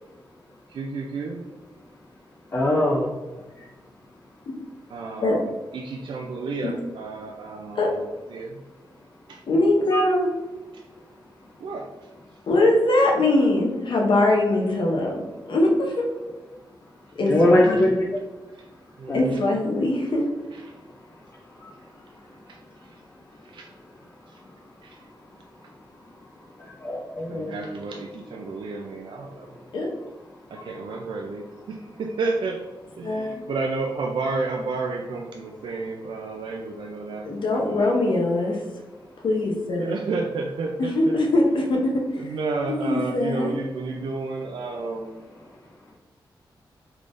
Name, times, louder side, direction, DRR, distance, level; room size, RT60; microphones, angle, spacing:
voice 1, 0.7-1.4 4.9-8.0 8.3-8.6 9.3-9.4 11.6-11.9 17.7-17.9 19.0-19.4 22.5-22.6 23.5-23.7 24.8-25.0 27.3-29.5 30.5-32.6 33.0-37.9 39.8-41.2 42.2-45.2, right 3 dB, 75° right, 1 dB, 0.4 m, -31 dB
voice 2, 2.5-3.1 9.9-10.0 17.3-18.1 19.1-19.2 26.8-27.7, left 1 dB, 30° left, -2 dB, 0.4 m, -21 dB
voice 3, 9.5-10.3 12.5-16.1 17.2-17.9 19.1-20.2 29.7-29.9 33.0-33.4 37.2-38.6 39.2-39.9 40.8-42.4 42.7-43.5, left 2 dB, 70° left, 0 dB, 0.7 m, -22 dB
3.6 x 3.3 x 2.5 m, 1.1 s
wide cardioid pair, 110°, 9 cm